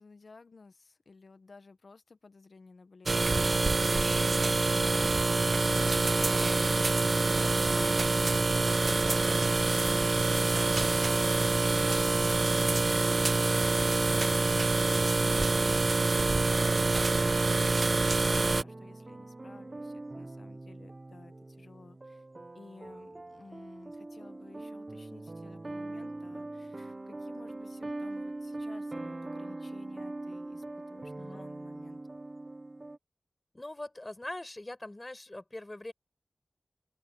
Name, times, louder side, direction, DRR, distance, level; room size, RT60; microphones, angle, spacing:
voice 1, 0.0-3.6 3.9-6.7 7.4-22.2 22.5-32.0, left 4 dB, 75° left, 1.5 m, -54 dB
sound 1, 3.1-18.6, right 3 dB, 60° right, 0.3 m, -26 dB
sound 2, 18.4-33.0, right 2 dB, 40° right, 1.3 m, -42 dB
voice 2, 33.5-35.9, left 1 dB, 30° left, 7.2 m, -43 dB
open air
cardioid pair, 45°, 0 cm